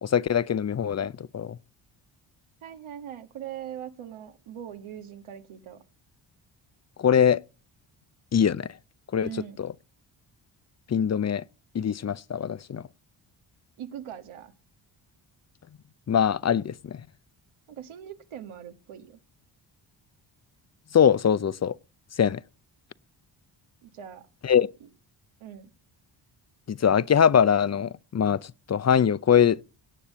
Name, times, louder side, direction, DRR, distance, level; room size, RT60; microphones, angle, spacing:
voice 1, 0.0-1.6 7.0-7.4 8.3-8.7 9.1-9.3 9.6-9.7 10.9-11.4 11.7-12.8 16.1-17.0 20.9-21.8 22.2-22.4 24.4-24.7 26.7-28.4 28.7-29.6, left 8 dB, 35° left, 0.6 m, -22 dB
voice 2, 2.6-5.8 9.2-9.6 13.8-14.5 17.7-19.2 23.8-24.3 24.8-24.9 25.4-25.7, right 10 dB, 80° right, 1.6 m, -41 dB
17.5 x 6.6 x 7.4 m
supercardioid pair, 55°, 49 cm